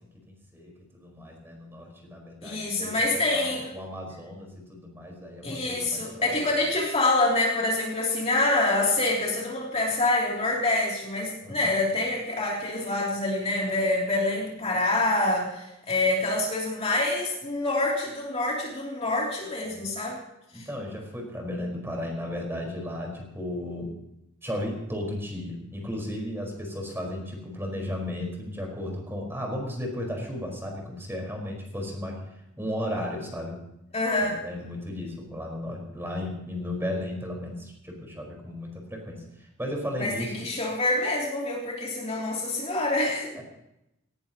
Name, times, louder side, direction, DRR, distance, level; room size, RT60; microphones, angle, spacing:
voice 1, 0.3-2.9 3.3-6.2 11.4-11.7 19.6-19.8 20.5-23.9 24.4-32.2 32.6-33.6 34.2-40.4 43.4-43.5, left 1 dB, 10° right, 0 dB, 4.7 m, -35 dB
voice 2, 2.4-3.7 5.4-20.2 20.5-20.7 33.9-34.4 40.0-43.4, left 2 dB, 30° left, -2 dB, 3.1 m, -26 dB
18.5 x 18.5 x 3.0 m, 0.85 s
head